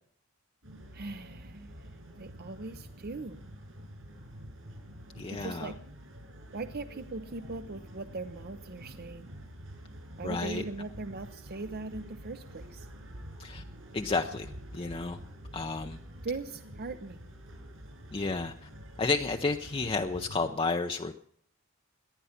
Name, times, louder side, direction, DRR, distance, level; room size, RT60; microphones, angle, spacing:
sound 1, 0.6-20.5, equal, 70° right, 6.8 m, -47 dB
voice 1, 0.9-3.4 5.3-5.8 6.5-9.3 10.2-12.9 16.2-17.3, right 3 dB, 45° right, 10 dB, 0.6 m, -40 dB
voice 2, 5.2-5.7 10.2-10.6 13.4-13.6 13.9-15.2 15.5-16.0 18.1-18.7 19.0-21.1, left 3 dB, 25° left, 5 dB, 0.5 m, -31 dB
18.5 x 11.0 x 5.8 m, 0.66 s
head